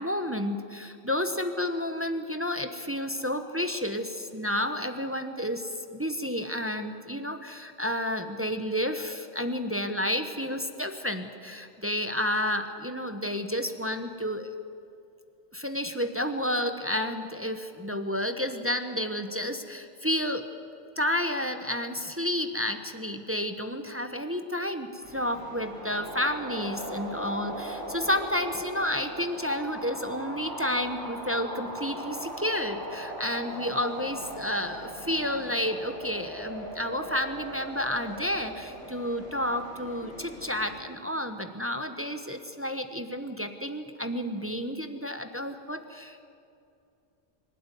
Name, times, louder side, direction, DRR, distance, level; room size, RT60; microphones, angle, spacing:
voice 1, 0.0-14.5 15.5-20.4 21.0-46.2, left 1 dB, 10° right, 7 dB, 0.9 m, -31 dB
sound 1, 25.0-40.8, right 1 dB, 85° right, 5.3 m, -40 dB
24.5 x 12.5 x 9.9 m, 2.6 s
omnidirectional pair, 1.2 m